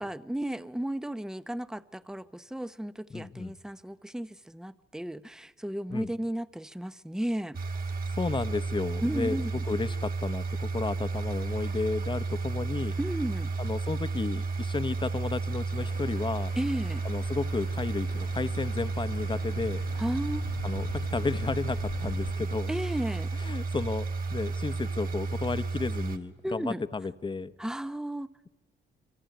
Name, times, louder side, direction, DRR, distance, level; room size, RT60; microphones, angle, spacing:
voice 1, 0.0-7.6 9.0-9.5 13.0-13.5 16.6-17.0 20.0-20.5 22.7-23.3 26.4-26.8 27.6-28.3, right 1 dB, 5° right, 0.9 m, -34 dB
voice 2, 3.1-3.5 5.9-6.1 8.1-9.4 9.7-12.9 13.6-16.5 17.0-19.8 20.6-22.7 23.3-27.5, left 4 dB, 25° left, 1.1 m, -33 dB
sound 1, 7.5-26.2, right 4 dB, 45° right, 2.4 m, -32 dB
sound 2, 15.8-22.3, left 9 dB, 85° left, 1.4 m, -44 dB
27.0 x 24.0 x 9.2 m
cardioid pair, 90°, 20 cm